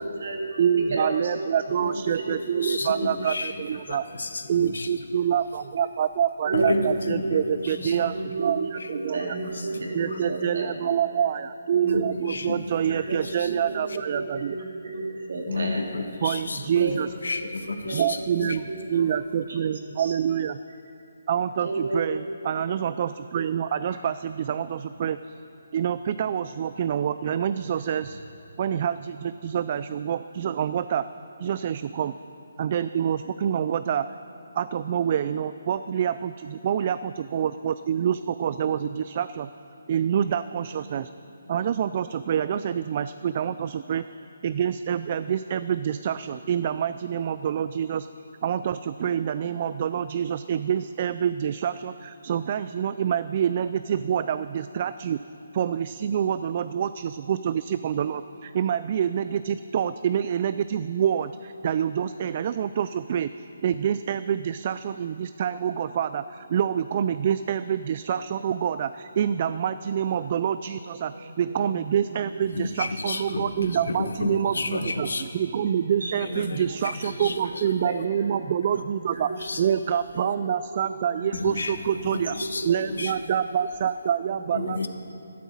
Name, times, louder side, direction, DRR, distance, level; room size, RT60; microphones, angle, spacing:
voice 1, 0.0-3.1 5.2-5.3 6.4-10.8 11.7-15.9 16.7-17.5 17.8-18.1 18.6-19.0 19.3-20.2 21.6-22.1 23.9-24.0 71.1-71.8 72.1-72.2 73.3-73.7 74.6-75.2 75.6-76.4 77.1-78.6 79.1-79.6 79.8-81.3 81.9-82.1 82.4-83.4 84.0-84.7, right 2 dB, 65° right, 0 dB, 3.0 m, -34 dB
voice 2, 0.6-4.0 4.5-9.3 9.9-14.6 16.2-17.1 17.9-18.6 18.9-20.6 21.3-25.4 25.7-28.2 28.6-31.1 31.4-32.1 32.6-34.1 34.6-39.5 39.9-41.1 41.5-44.0 44.4-48.1 48.4-55.2 55.5-79.3 79.6-82.4 82.6-84.9, right 8 dB, 35° right, 13 dB, 0.3 m, -27 dB
voice 3, 1.8-3.6 3.9-5.2 6.5-8.3 8.8-8.9 10.1-10.2 11.9-12.6 12.8-13.5 15.5-18.6 72.5-75.2 76.2-77.9 79.4-79.6 81.3-83.1 84.5-84.9, left 3 dB, 85° left, 7 dB, 1.4 m, -32 dB
12.5 x 12.0 x 7.3 m, 2.9 s
hypercardioid pair, 165°, 0 cm